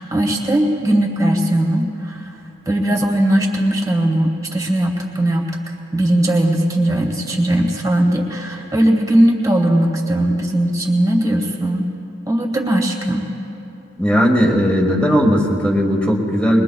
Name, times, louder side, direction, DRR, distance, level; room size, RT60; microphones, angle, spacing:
voice 1, 0.0-2.2 2.7-5.5 5.9-11.9 12.3-13.3, right 1 dB, 15° right, 1 dB, 1.5 m, -18 dB
voice 2, 14.0-16.6, equal, 5° left, 0 dB, 1.5 m, -16 dB
23.0 x 21.0 x 2.3 m, 2.8 s
head